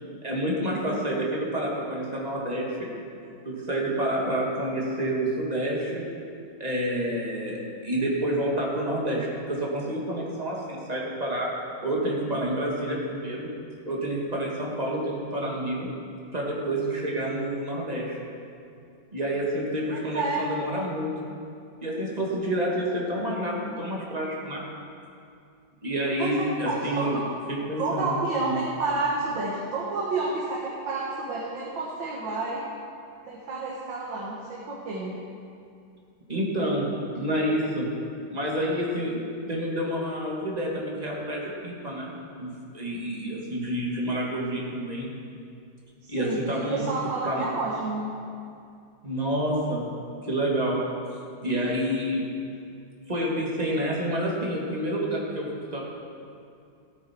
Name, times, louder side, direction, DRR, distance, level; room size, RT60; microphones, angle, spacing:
voice 1, 0.2-2.9 3.4-6.0 6.6-7.6 7.8-11.5 11.8-13.5 13.9-15.9 16.3-18.2 19.1-21.1 21.8-24.6 25.8-27.2 27.5-28.6 36.3-36.9 37.2-37.9 38.3-39.2 39.5-42.1 42.4-45.1 46.1-46.9 47.2-47.5 49.0-49.9 50.2-50.8 51.4-52.2 53.1-55.9, right 1 dB, 20° right, -4 dB, 2.0 m, -28 dB
voice 2, 19.9-20.4 26.2-27.2 27.8-32.6 33.3-35.2 46.0-48.1, right 3 dB, 75° right, -5 dB, 2.1 m, -30 dB
15.5 x 9.4 x 4.5 m, 2.4 s
omnidirectional pair, 2.1 m